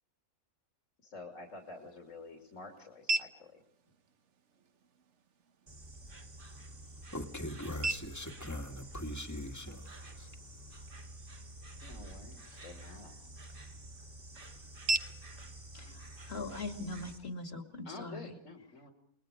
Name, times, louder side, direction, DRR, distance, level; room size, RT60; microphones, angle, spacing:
voice 1, 1.0-3.6 11.8-13.2 17.8-18.9, left 2 dB, 65° left, 1 dB, 3.1 m, -49 dB
sound 1, 1.3-17.3, right 3 dB, 60° right, 1.3 m, -43 dB
Insect, 5.7-17.2, right 1 dB, 40° right, 2.5 m, -49 dB
voice 2, 7.1-10.4, left 1 dB, 10° left, 5 dB, 1.9 m, -41 dB
voice 3, 15.7-18.3, left 3 dB, 45° left, 5 dB, 2.5 m, -41 dB
29.0 x 21.0 x 5.0 m, 0.67 s
omnidirectional pair, 1.4 m